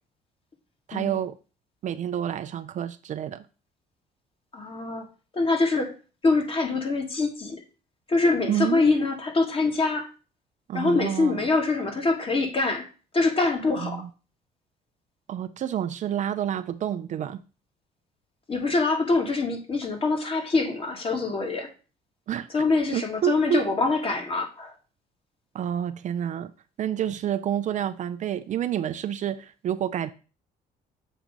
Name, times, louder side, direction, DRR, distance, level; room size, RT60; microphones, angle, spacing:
voice 1, 0.9-1.4 1.8-3.4 8.5-8.9 10.7-11.4 13.8-14.1 15.3-17.4 22.3-22.5 22.9-23.6 25.5-26.5 26.8-30.1, right 10 dB, 45° right, 0.4 m, -28 dB
voice 2, 4.5-5.1 5.3-5.9 6.2-7.6 8.1-10.1 10.7-14.1 18.5-21.7 22.5-24.7, left 3 dB, 35° left, 1.5 m, -24 dB
7.2 x 2.9 x 5.1 m
cardioid pair, 110°, 17 cm